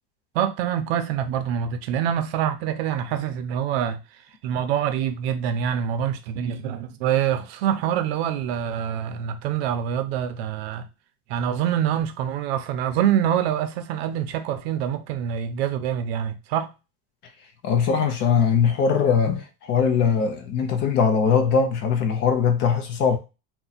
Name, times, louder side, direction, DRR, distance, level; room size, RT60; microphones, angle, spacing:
voice 1, 0.3-4.0 4.4-10.9 11.3-16.7, right 9 dB, 70° right, 0.6 m, -25 dB
voice 2, 17.6-23.2, left 6 dB, 35° left, 0.5 m, -21 dB
2.9 x 2.2 x 3.9 m
cardioid pair, 170°, 32 cm